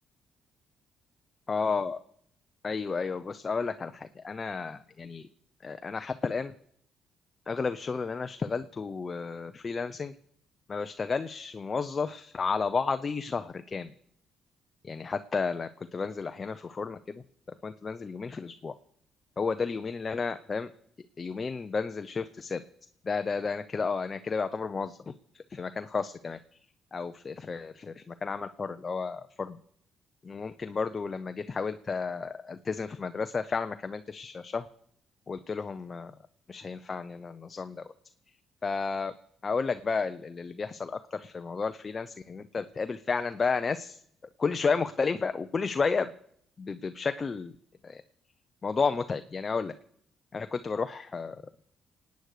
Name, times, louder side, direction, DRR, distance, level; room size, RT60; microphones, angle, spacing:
voice 1, 1.5-2.0 2.6-5.2 5.6-6.5 7.5-10.1 10.7-13.9 14.8-17.0 17.6-18.7 19.4-20.7 21.2-22.6 23.0-26.4 26.9-29.6 30.2-34.7 35.3-36.1 36.5-37.8 38.6-39.1 39.4-44.0 44.4-46.1 46.6-47.5 47.8-48.0 48.6-49.7 50.3-51.4, left 5 dB, 35° left, 9 dB, 0.6 m, -32 dB
27.5 x 9.3 x 4.9 m, 0.69 s
cardioid pair, 90°, 0 cm